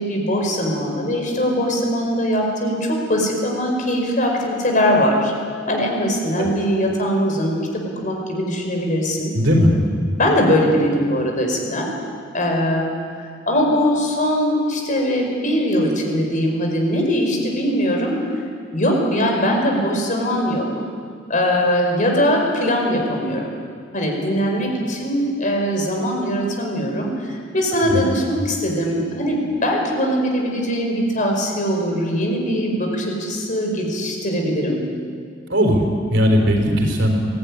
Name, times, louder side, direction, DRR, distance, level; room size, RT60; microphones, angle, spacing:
voice 1, 0.0-5.3 5.7-9.4 10.2-11.9 12.3-12.9 13.2-18.2 18.7-20.7 21.3-23.5 23.9-34.8, equal, 45° left, 1 dB, 5.0 m, -21 dB
voice 2, 9.3-9.7 27.8-28.0 35.5-37.3, equal, 70° right, 2 dB, 4.4 m, -18 dB
22.5 x 17.0 x 9.8 m, 2.2 s
head